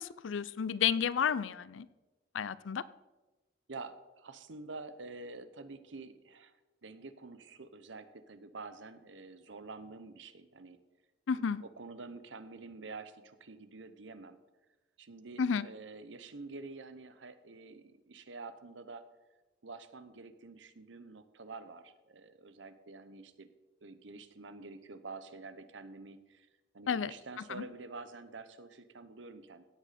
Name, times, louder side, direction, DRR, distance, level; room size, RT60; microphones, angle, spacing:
voice 1, 0.0-1.9 2.3-2.8 11.3-11.6 15.4-15.7 26.9-27.1 27.5-27.6, left 7 dB, 90° left, 17 dB, 0.5 m, -31 dB
voice 2, 3.7-6.5 6.8-10.8 11.4-14.4 15.0-19.0 19.6-23.5 23.8-26.5 26.7-29.6, right 3 dB, 80° right, 12 dB, 0.9 m, -48 dB
16.5 x 8.2 x 4.2 m, 1.1 s
head